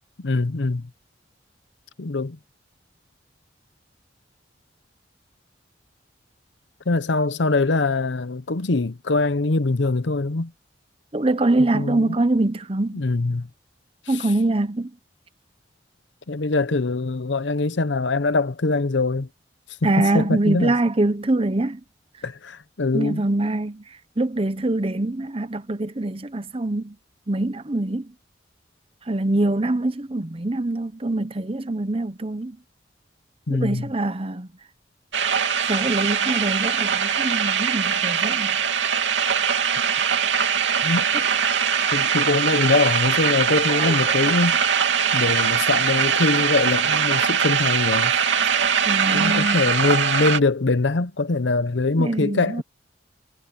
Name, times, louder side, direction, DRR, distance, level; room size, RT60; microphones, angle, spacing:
voice 1, 0.2-0.9 2.0-2.4 6.9-10.5 11.7-12.2 12.9-13.5 16.3-19.3 19.8-20.7 22.2-23.2 33.5-33.9 40.8-41.1 41.9-44.6 45.1-48.1 49.1-52.6, left 3 dB, 75° left, 0.8 m, -23 dB
voice 2, 11.1-13.1 14.1-14.9 19.8-21.8 22.9-23.8 24.2-27.0 27.3-28.1 29.1-32.6 33.5-34.5 35.6-38.6 43.7-44.2 45.3-45.5 48.8-49.6 52.0-52.6, right 2 dB, 30° right, 0.8 m, -24 dB
sound 1, 35.1-50.4, right 7 dB, 80° right, 2.8 m, -22 dB
head